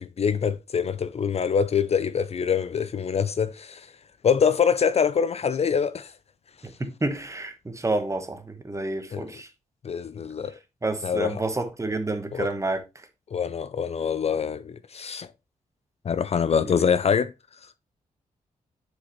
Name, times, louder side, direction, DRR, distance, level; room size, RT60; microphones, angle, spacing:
voice 1, 0.0-3.9 4.2-6.1 9.1-9.3 9.8-10.5 11.0-11.4 12.3-12.5 13.3-15.3 16.0-17.3, left 7 dB, 45° left, 0.4 m, -24 dB
voice 2, 6.6-9.5 10.8-12.8 16.7-16.8, right 2 dB, 20° right, 1.2 m, -29 dB
7.1 x 5.0 x 3.1 m
cardioid pair, 75°, 14 cm